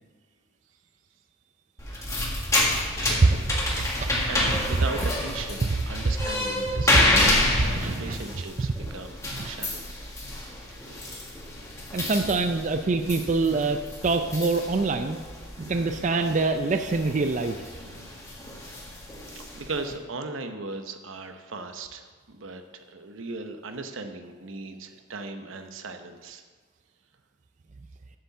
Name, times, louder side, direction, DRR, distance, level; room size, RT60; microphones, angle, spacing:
sound 1, 1.8-19.9, left 1 dB, 15° left, 1.6 m, -29 dB
voice 1, 2.6-3.5 3.9-9.9 19.3-26.4, right 3 dB, 85° right, 7 dB, 0.9 m, -38 dB
voice 2, 3.2-5.0 5.3-5.8 6.7-6.9 7.2-7.3 7.7-8.7 9.3-9.5 11.9-15.2 15.7-17.6, right 3 dB, 40° right, 7 dB, 0.4 m, -26 dB
7.7 x 6.9 x 7.1 m, 1.5 s
head